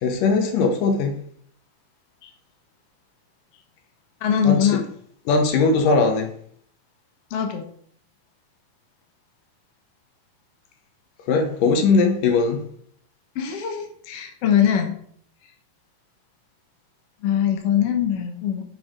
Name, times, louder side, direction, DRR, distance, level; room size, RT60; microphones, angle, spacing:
voice 1, 0.0-1.2 4.4-4.8 5.3-6.3 11.3-12.6, left 4 dB, 75° left, 2.6 m, -19 dB
voice 2, 4.2-4.8 7.3-7.6 13.3-15.0 17.2-18.6, left 9 dB, 60° left, 1.7 m, -22 dB
7.0 x 6.9 x 5.1 m
omnidirectional pair, 4.0 m